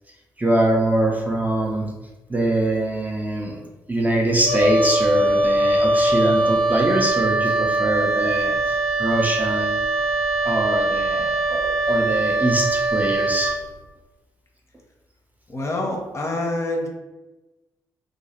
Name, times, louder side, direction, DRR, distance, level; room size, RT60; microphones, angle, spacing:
voice 1, 0.4-1.9 2.3-3.6 3.9-9.8 10.4-13.6, right 1 dB, 15° right, 0 dB, 0.6 m, -23 dB
Wind instrument woodwind instrument, 4.4-13.6, right 2 dB, 85° left, 0.4 m, -21 dB
voice 2, 15.5-16.9, left 2 dB, 30° left, 0 dB, 0.6 m, -26 dB
2.4 x 2.2 x 2.9 m, 1.1 s
hypercardioid pair, 40°, 10 cm